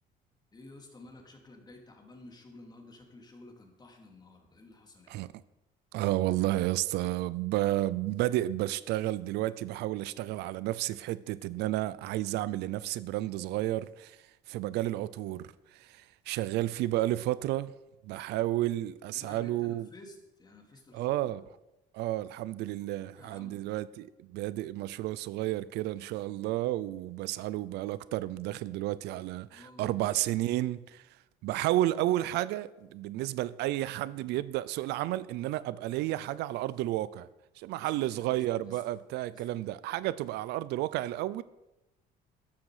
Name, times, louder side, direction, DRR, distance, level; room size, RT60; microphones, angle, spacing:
voice 1, 0.5-5.3 19.1-21.4 22.9-23.6 29.5-30.0 37.8-39.0 39.3-39.5, left 2 dB, 25° left, 3.0 m, -53 dB
voice 2, 5.9-14.2 14.5-17.7 18.0-19.9 20.9-21.4 21.9-31.0 31.4-37.3 37.6-41.4, right 15 dB, 85° right, 0.6 m, -31 dB
13.5 x 11.5 x 5.0 m
cardioid pair, 110°, 17 cm